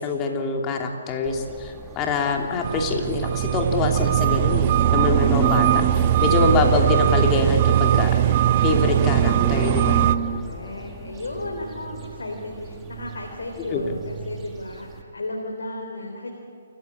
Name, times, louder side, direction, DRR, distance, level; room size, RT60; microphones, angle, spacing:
voice 1, 0.0-5.8 6.2-8.1 8.6-10.1 13.7-13.8, left 3 dB, 25° left, 2 dB, 2.9 m, -24 dB
sound 1, 1.3-15.0, right 6 dB, 20° right, 1.9 m, -32 dB
sound 2, 2.6-10.2, right 11 dB, 40° right, 0.7 m, -20 dB
voice 2, 10.2-16.3, left 2 dB, 85° left, 1 dB, 3.6 m, -34 dB
29.0 x 15.5 x 8.6 m, 2.7 s
hypercardioid pair, 145°, 0 cm